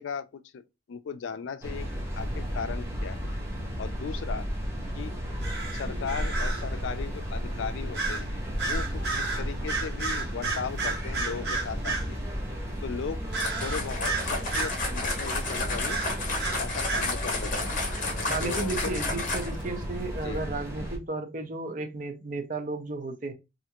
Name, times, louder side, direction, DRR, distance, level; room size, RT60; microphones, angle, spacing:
voice 1, 0.0-1.9 2.2-3.2 3.8-4.5 5.0-5.1 5.7-12.2 12.8-13.2 13.6-16.0 16.6-17.7 18.4-19.0 20.1-20.4, left 6 dB, 90° left, 0.4 m, -37 dB
sound 1, 1.6-21.0, equal, 15° right, 0.8 m, -34 dB
sound 2, 5.4-6.7 7.9-8.3 8.6-12.1 13.3-14.8 15.9-17.1, right 4 dB, 65° right, 0.9 m, -32 dB
sound 3, 13.3-19.7, left 3 dB, 45° left, 0.9 m, -32 dB
voice 2, 18.3-23.3, right 3 dB, 45° right, 0.6 m, -33 dB
3.3 x 2.5 x 2.9 m
head